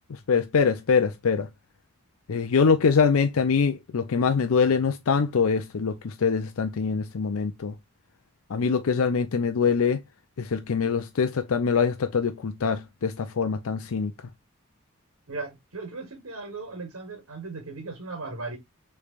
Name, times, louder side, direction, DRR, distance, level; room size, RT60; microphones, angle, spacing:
voice 1, 0.3-1.5 2.3-7.7 8.5-10.0 10.4-14.1, left 5 dB, 80° left, 0.5 m, -24 dB
voice 2, 15.3-18.6, right 3 dB, 80° right, 1.5 m, -37 dB
6.5 x 3.3 x 2.4 m
head